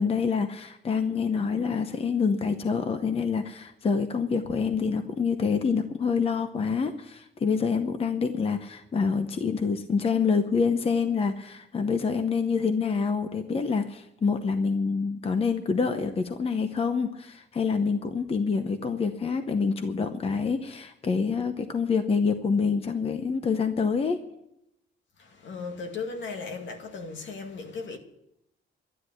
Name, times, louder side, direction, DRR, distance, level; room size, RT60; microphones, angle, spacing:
voice 1, 0.0-24.2, left 5 dB, 30° left, 0.8 m, -26 dB
voice 2, 25.2-28.0, left 4 dB, 65° left, 2.1 m, -37 dB
12.5 x 9.8 x 9.1 m
wide cardioid pair, 170°, 21 cm